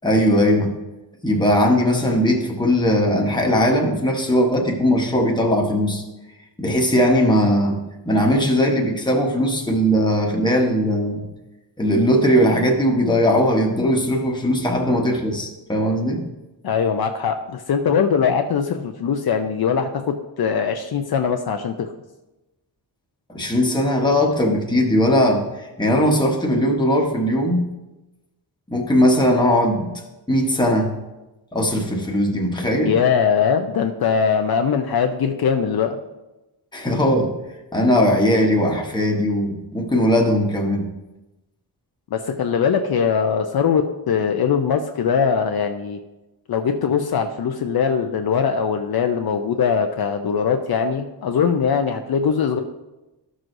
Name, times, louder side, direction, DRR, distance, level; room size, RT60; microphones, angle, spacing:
voice 1, 0.0-0.7 1.2-6.0 6.6-7.8 8.1-11.2 11.8-16.2 23.3-27.7 28.7-29.9 30.3-30.9 31.5-33.0 36.7-37.3 37.7-40.9, equal, 10° left, 0 dB, 1.0 m, -19 dB
voice 2, 16.6-21.9 32.8-36.0 42.1-46.0 46.5-52.6, left 6 dB, 60° left, 5 dB, 0.5 m, -21 dB
13.5 x 6.2 x 2.6 m, 1.0 s
wide cardioid pair, 160°, 43 cm